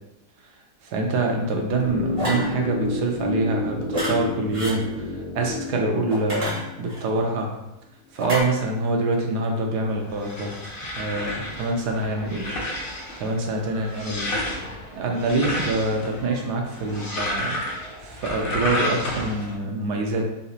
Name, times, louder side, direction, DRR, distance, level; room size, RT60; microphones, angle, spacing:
voice 1, 0.8-7.6 8.1-10.5 11.0-12.5 13.2-14.3 14.5-14.6 14.9-17.6 18.0-20.2, right 2 dB, 80° right, 1 dB, 1.1 m, -25 dB
sound 1, 1.8-8.1, left 2 dB, 85° left, 1.3 m, -30 dB
sound 2, 2.2-2.5 3.9-4.2 4.5-4.8 6.1-7.0 8.2-8.4, equal, 35° right, 0.5 m, -28 dB
sound 3, 9.9-19.5, left 1 dB, 60° left, 0.6 m, -31 dB
3.9 x 2.4 x 2.7 m, 0.90 s
omnidirectional pair, 1.8 m